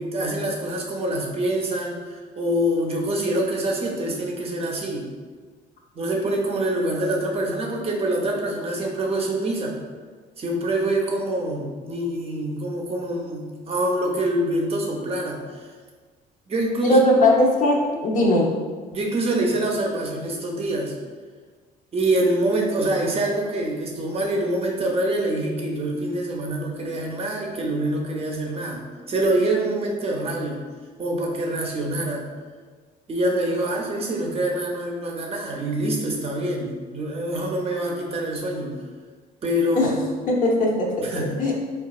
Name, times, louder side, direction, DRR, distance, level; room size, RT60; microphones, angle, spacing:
voice 1, 0.0-5.1 5.9-9.8 10.4-15.7 16.5-17.0 18.9-20.9 21.9-30.6 31.0-32.3 33.1-38.7 39.4-40.0 41.0-41.4, right 1 dB, 35° right, 0 dB, 0.6 m, -25 dB
voice 2, 16.8-18.5 39.8-39.9 40.3-41.5, left 1 dB, 50° left, -2 dB, 0.7 m, -19 dB
3.9 x 2.3 x 2.3 m, 1.5 s
cardioid pair, 110°, 17 cm